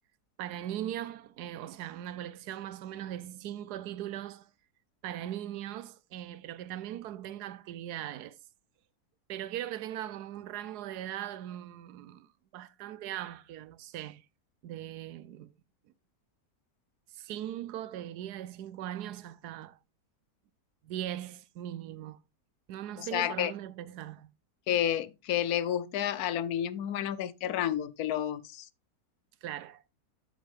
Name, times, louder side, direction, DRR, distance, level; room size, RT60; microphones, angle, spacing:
voice 1, 0.4-4.5 5.0-8.4 9.3-12.3 12.5-14.2 14.6-15.5 17.1-19.8 20.8-22.2 22.7-24.3 29.4-29.8, right 12 dB, 85° right, 1.2 m, -39 dB
voice 2, 23.0-23.5 24.7-28.7, left 10 dB, 75° left, 1.1 m, -30 dB
8.0 x 7.9 x 3.2 m
omnidirectional pair, 1.7 m